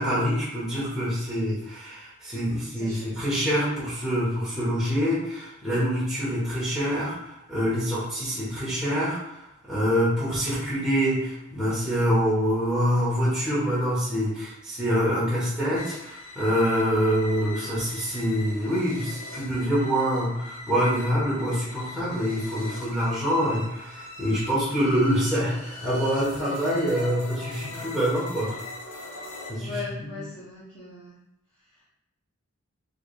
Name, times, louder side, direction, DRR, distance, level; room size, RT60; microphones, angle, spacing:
voice 1, 0.0-9.2 9.7-28.6 29.5-30.1, equal, 5° right, -10 dB, 1.2 m, -25 dB
voice 2, 2.4-3.4 29.6-31.1, left 4 dB, 25° left, -10 dB, 0.9 m, -39 dB
sound 1, 15.8-29.5, left 2 dB, 80° left, 1.0 m, -41 dB
4.6 x 3.3 x 2.4 m, 0.84 s
head